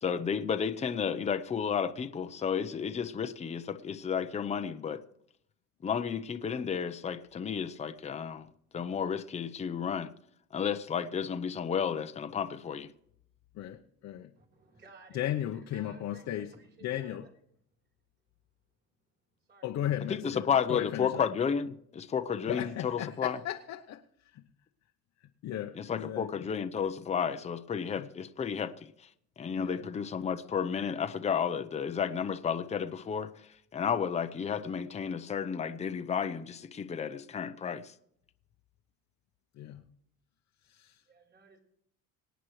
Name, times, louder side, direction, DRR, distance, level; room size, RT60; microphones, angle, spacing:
voice 1, 0.0-5.0 5.8-10.1 10.5-12.9 20.1-23.4 25.8-29.1 29.4-37.9, left 7 dB, 20° left, 0.7 m, -32 dB
voice 2, 13.5-14.3 15.1-16.5 16.8-17.3 19.6-21.3 22.5-24.4 25.4-26.5 28.0-28.1 29.6-29.9 39.5-39.8 40.6-41.0, left 11 dB, 45° left, 0.9 m, -36 dB
voice 3, 14.4-15.2 15.7-17.3 19.4-19.9 41.1-41.6, right 4 dB, 30° right, 3.9 m, -56 dB
25.0 x 9.2 x 3.2 m
cardioid pair, 140°, 37 cm